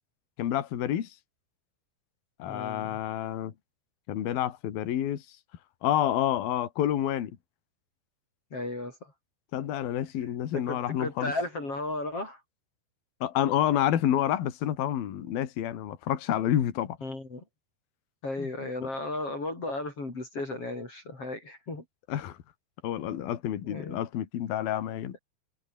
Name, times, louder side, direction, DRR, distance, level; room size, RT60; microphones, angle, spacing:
voice 1, 0.4-1.2 2.4-3.5 4.1-5.2 5.8-7.3 9.5-11.3 13.2-17.0 18.4-18.5 22.1-22.4 22.8-25.2, left 11 dB, 60° left, 3.8 m, -29 dB
voice 2, 2.5-3.0 8.5-9.1 10.5-12.4 17.0-17.4 18.2-21.8 23.6-24.0, left 2 dB, 30° left, 6.1 m, -35 dB
omnidirectional pair, 5.1 m